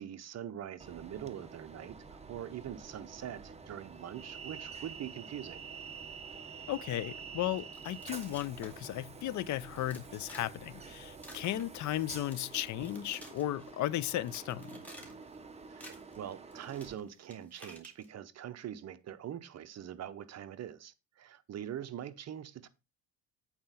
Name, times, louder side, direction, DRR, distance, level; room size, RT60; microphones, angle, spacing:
voice 1, 0.0-5.6 15.7-22.7, right 10 dB, 40° right, 0.8 m, -43 dB
Train, 0.8-16.9, right 5 dB, 15° right, 1.0 m, -48 dB
voice 2, 6.7-14.7, left 13 dB, 50° left, 0.6 m, -35 dB
Wood-break-stress, 7.5-8.9 9.2-9.3 9.7-10.5 10.7-12.0 12.3-13.7 14.1-15.4 15.6-18.1, equal, 5° left, 2.4 m, -53 dB
8.7 x 4.4 x 5.6 m
cardioid pair, 120°, 38 cm